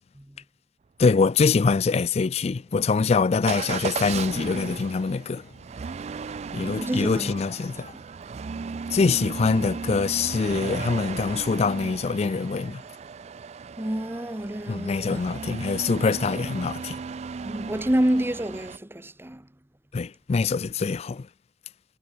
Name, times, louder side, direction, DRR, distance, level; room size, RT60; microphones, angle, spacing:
voice 1, 1.0-5.5 6.5-7.9 8.9-12.8 14.7-17.0 19.9-21.3, left 4 dB, 35° left, 0.4 m, -24 dB
Motor vehicle (road) / Engine starting / Accelerating revving vroom, 3.5-18.8, right 5 dB, 35° right, 0.3 m, -36 dB
voice 2, 6.5-7.3 7.9-8.0 13.8-15.2 17.4-19.5, right 1 dB, 15° right, 0.9 m, -28 dB
head